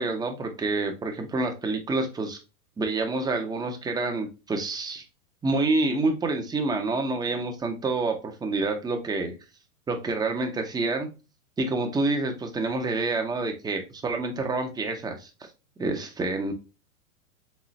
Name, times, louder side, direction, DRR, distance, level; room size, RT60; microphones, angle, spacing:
voice 1, 0.0-2.4 2.8-5.0 5.4-9.3 9.9-11.1 11.6-15.3 15.8-16.5, right 3 dB, 10° right, 4 dB, 0.7 m, -28 dB
4.2 x 3.6 x 3.1 m, 0.29 s
hypercardioid pair, 110°, 45 cm